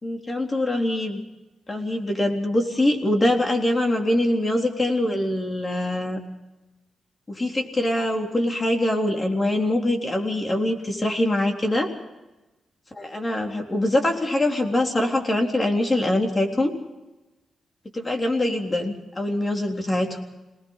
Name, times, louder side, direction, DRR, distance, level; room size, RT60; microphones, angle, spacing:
voice 1, 0.0-1.2 1.7-6.2 7.3-11.9 12.9-16.7 17.9-20.2, left 1 dB, 25° left, 2 dB, 3.7 m, -23 dB
27.5 x 19.5 x 5.7 m, 1.0 s
wide cardioid pair, 120°, 0 cm